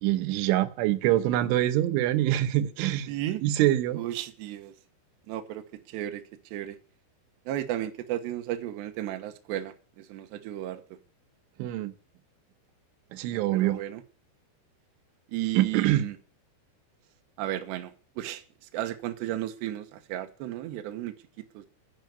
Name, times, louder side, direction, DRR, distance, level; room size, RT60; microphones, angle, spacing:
voice 1, 0.0-3.1 3.4-4.0 11.6-11.9 13.1-13.8 15.6-16.1, right 14 dB, 90° right, 3.5 m, -25 dB
voice 2, 3.1-3.4 3.9-4.7 5.3-6.2 6.5-6.8 7.5-10.8 13.3-14.0 15.3-16.2 17.4-18.4 18.7-21.1 21.5-21.7, right 13 dB, 75° right, 3.2 m, -34 dB
10.5 x 10.5 x 9.3 m
omnidirectional pair, 5.4 m